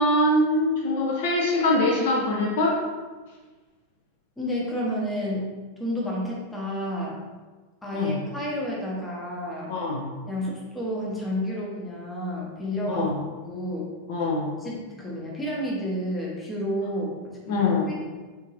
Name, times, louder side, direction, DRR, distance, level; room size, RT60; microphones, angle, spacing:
voice 1, 0.0-2.8 7.9-8.2 9.7-10.1 12.9-13.1 14.1-14.5 17.5-17.9, left 2 dB, 55° left, -3 dB, 0.6 m, -23 dB
voice 2, 4.4-5.5 5.8-7.2 7.8-9.7 10.3-13.0 13.4-13.9 14.6-17.9, equal, 10° left, -4 dB, 0.9 m, -30 dB
3.6 x 2.8 x 2.9 m, 1.3 s
figure-of-eight pair, 90°, 0 cm